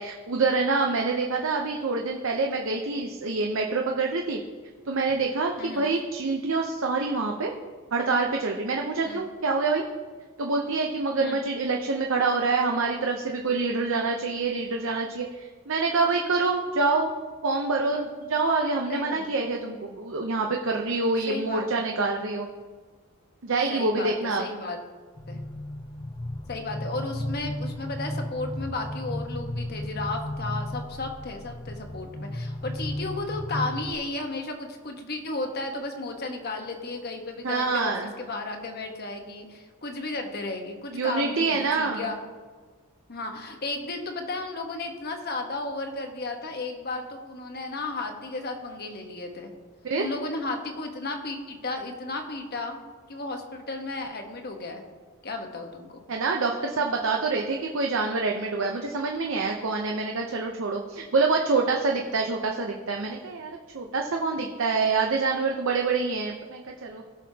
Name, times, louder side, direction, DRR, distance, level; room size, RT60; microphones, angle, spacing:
voice 1, 0.0-4.4 4.9-7.5 7.9-9.8 10.4-17.1 17.4-22.5 23.4-24.4 37.4-38.1 40.9-42.1 49.8-50.0 56.1-67.0, right 3 dB, 60° right, 1 dB, 0.7 m, -26 dB
voice 2, 18.9-19.2 21.3-21.9 23.7-24.8 25.3-25.4 26.5-42.2 43.1-49.5 50.0-52.8 53.1-54.8 55.2-55.9, left 2 dB, 45° left, 4 dB, 1.2 m, -34 dB
sound 1, 25.2-33.9, left 1 dB, 20° left, 0.4 m, -34 dB
17.0 x 6.5 x 2.8 m, 1.5 s
head